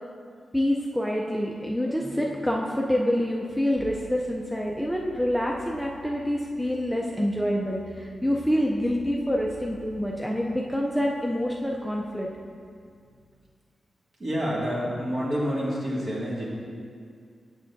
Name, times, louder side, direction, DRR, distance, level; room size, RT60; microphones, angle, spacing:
voice 1, 0.5-12.3, equal, ahead, -2 dB, 0.4 m, -27 dB
sound 1, 3.8-13.3, left 3 dB, 30° left, 1.1 m, -51 dB
voice 2, 14.2-16.5, equal, 45° right, -6 dB, 1.9 m, -28 dB
9.1 x 7.2 x 2.6 m, 2.2 s
wide cardioid pair, 125°, 0 cm